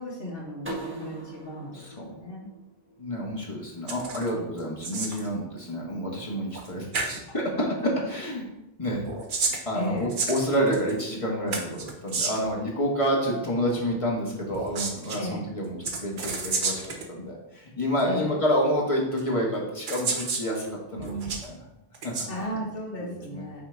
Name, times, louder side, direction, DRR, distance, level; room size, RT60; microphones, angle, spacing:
voice 1, 0.0-2.5 7.1-7.2 9.7-10.1 15.2-15.4 18.0-18.4 22.3-23.6, left 1 dB, 60° left, -5 dB, 1.8 m, -35 dB
sound 1, 0.6-3.5, right 2 dB, 10° right, 1.2 m, -40 dB
voice 2, 1.7-2.1 3.0-8.4 8.8-9.0 9.6-16.8 17.1-21.6 22.0-22.1 23.0-23.4, equal, 30° left, -2 dB, 1.5 m, -28 dB
sound 2, 3.9-4.3 4.6-5.3 6.5-6.7 6.9-7.2 9.0-10.9 11.5-12.5 14.5-15.2 15.8-17.1 18.0-18.1 19.2-19.3 19.9-20.5 21.0-21.5 21.9-22.3, right 4 dB, 55° right, 0.9 m, -31 dB
6.0 x 4.1 x 4.6 m, 0.89 s
omnidirectional pair, 1.1 m